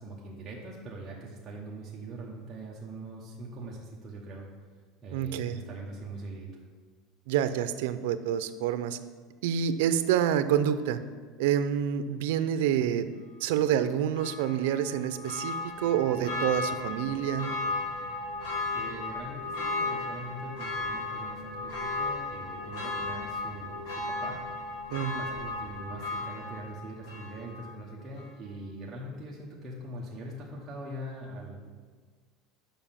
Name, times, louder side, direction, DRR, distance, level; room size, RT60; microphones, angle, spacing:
voice 1, 0.0-4.5 5.0-6.5 18.7-24.4 24.9-31.6, right 1 dB, 15° right, -4 dB, 0.8 m, -42 dB
voice 2, 5.1-5.6 7.3-9.0 9.4-11.0 11.4-13.1 13.4-17.5 24.9-25.2, right 9 dB, 80° right, 12 dB, 0.5 m, -27 dB
Church bell, 14.1-27.8 28.2-28.3, left 3 dB, 55° left, 1.5 m, -35 dB
7.0 x 5.3 x 5.6 m, 1.5 s
cardioid pair, 180°, 0 cm